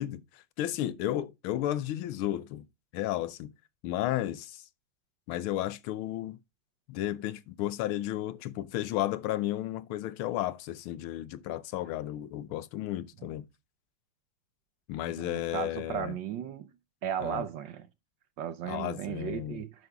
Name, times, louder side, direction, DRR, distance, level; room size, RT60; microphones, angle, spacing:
voice 1, 0.0-2.6 2.9-3.5 3.8-4.6 5.3-6.4 6.9-13.5 14.9-16.1 17.2-17.4 18.7-19.6, left 13 dB, 80° left, 1.5 m, -33 dB
voice 2, 15.1-16.7 17.0-17.9 18.4-19.9, right 9 dB, 70° right, 1.3 m, -35 dB
11.0 x 6.0 x 3.4 m
omnidirectional pair, 2.4 m